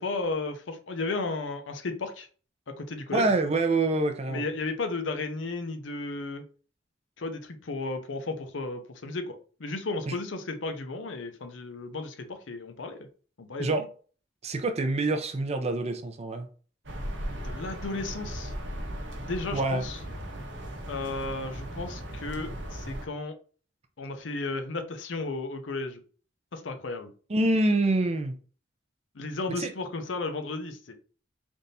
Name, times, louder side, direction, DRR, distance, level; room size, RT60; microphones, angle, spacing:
voice 1, 0.0-2.3 2.7-3.3 4.3-6.4 7.2-13.1 13.4-13.9 17.4-18.5 19.2-20.0 20.9-23.4 24.0-26.0 26.5-27.1 29.1-30.9, left 3 dB, 75° left, 0.7 m, -34 dB
voice 2, 3.1-4.4 10.1-10.2 13.6-13.8 14.4-16.5 19.5-19.8 27.3-28.4 29.6-29.7, right 2 dB, 35° right, 0.5 m, -26 dB
sound 1, 16.8-23.1, right 1 dB, 70° right, 0.9 m, -37 dB
3.5 x 2.6 x 4.1 m
head